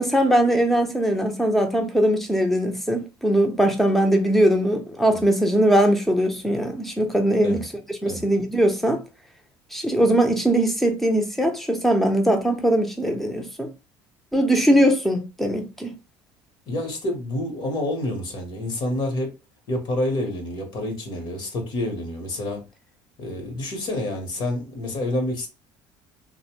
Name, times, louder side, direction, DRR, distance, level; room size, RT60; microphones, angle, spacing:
voice 1, 0.0-7.6 8.0-9.0 9.7-13.7 14.3-15.9, right 1 dB, ahead, 0.6 m, -20 dB
voice 2, 16.7-19.3 19.7-22.6 23.2-25.5, left 1 dB, 55° left, 1.0 m, -28 dB
2.6 x 2.1 x 3.0 m
cardioid pair, 115°, 10 cm